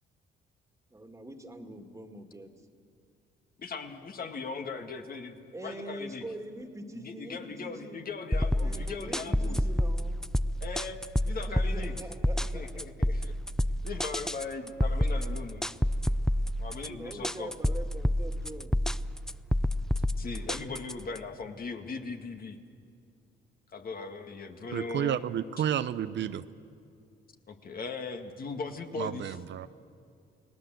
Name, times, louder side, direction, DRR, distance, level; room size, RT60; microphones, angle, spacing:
voice 1, 0.9-2.5 5.5-8.0 8.6-10.2 11.3-12.8 13.1-13.3 16.9-18.8, right 1 dB, 15° right, 5 dB, 2.3 m, -43 dB
voice 2, 3.6-6.2 6.9-9.6 10.6-12.0 12.5-13.3 13.8-15.6 16.6-17.5 20.2-22.6 23.7-25.2 27.5-29.4, left 4 dB, 50° left, 5 dB, 2.1 m, -39 dB
sound 1, 8.3-21.2, left 1 dB, 5° left, 0.5 m, -28 dB
voice 3, 24.7-26.4 29.0-29.7, right 10 dB, 65° right, 12 dB, 0.7 m, -31 dB
30.0 x 18.5 x 7.8 m, 2.4 s
cardioid pair, 90°, 20 cm